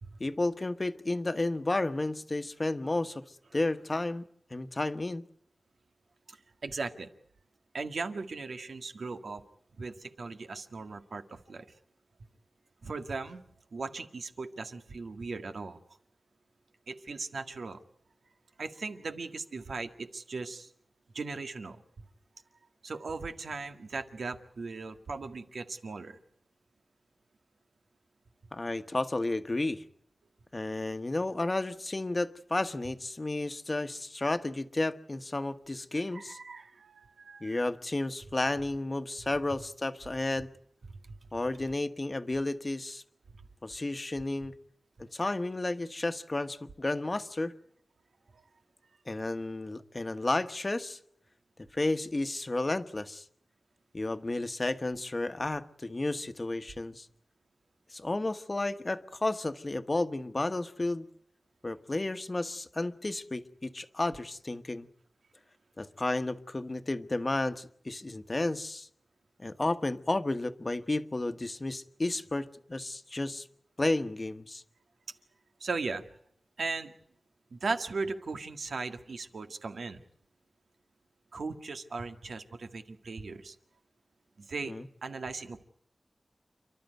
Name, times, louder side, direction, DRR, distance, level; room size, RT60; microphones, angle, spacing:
voice 1, 0.2-3.2 3.5-5.2 28.5-29.8 30.5-36.4 37.4-40.5 41.3-43.0 43.6-44.5 45.0-47.5 49.1-51.0 51.7-53.2 53.9-57.1 57.9-61.1 61.6-64.9 65.8-68.9 69.4-73.5 73.8-74.6 84.6-84.9, left 2 dB, 30° left, 10 dB, 1.2 m, -32 dB
voice 2, 6.3-7.1 7.7-9.4 9.8-11.7 12.8-13.4 13.7-15.8 16.9-17.8 18.6-20.7 21.1-22.1 22.8-26.2 35.9-37.6 41.1-41.2 75.6-76.1 76.6-76.9 77.5-80.0 81.3-83.5 84.4-84.8 85.0-85.6, right 4 dB, 85° right, 7 dB, 1.8 m, -38 dB
29.5 x 12.5 x 9.2 m, 0.72 s
wide cardioid pair, 95°, 0 cm